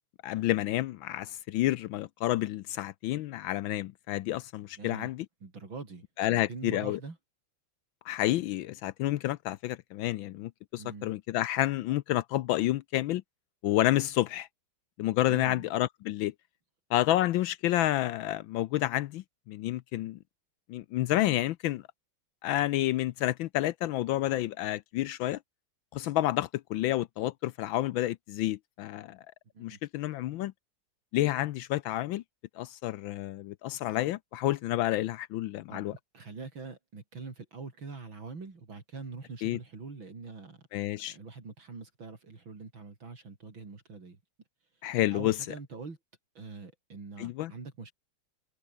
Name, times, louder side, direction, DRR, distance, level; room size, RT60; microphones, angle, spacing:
voice 1, 0.2-5.3 6.2-7.0 8.1-13.2 13.6-14.5 15.0-16.3 16.9-20.2 20.7-21.8 22.4-25.4 25.9-29.2 29.6-30.5 31.1-32.2 32.6-35.9 39.4-39.6 40.7-41.2 44.8-45.4 47.2-47.5, left 15 dB, 80° left, 1.4 m, -29 dB
voice 2, 4.8-5.1 5.4-7.2 10.8-11.1 15.3-15.7 29.5-29.8 35.7-35.8 36.1-40.7 41.1-44.2 44.7-44.8 45.1-46.0 46.3-47.9, right 4 dB, 70° right, 4.7 m, -44 dB
omnidirectional pair, 2.2 m